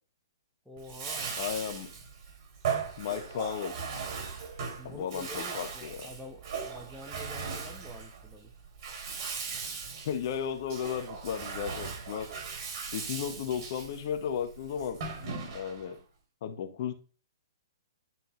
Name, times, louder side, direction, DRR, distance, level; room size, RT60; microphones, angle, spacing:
voice 1, 0.6-1.4 4.8-8.5, left 1 dB, ahead, 1.2 m, -47 dB
Bathtub (filling or washing), 0.8-15.9, right 5 dB, 45° right, 3.3 m, -38 dB
voice 2, 1.4-1.9 3.0-3.8 4.8-6.1 10.0-12.3 12.8-15.0 15.4-16.0 16.4-16.9, left 8 dB, 50° left, 1.3 m, -34 dB
11.0 x 4.4 x 3.2 m
hypercardioid pair, 125°, 2 cm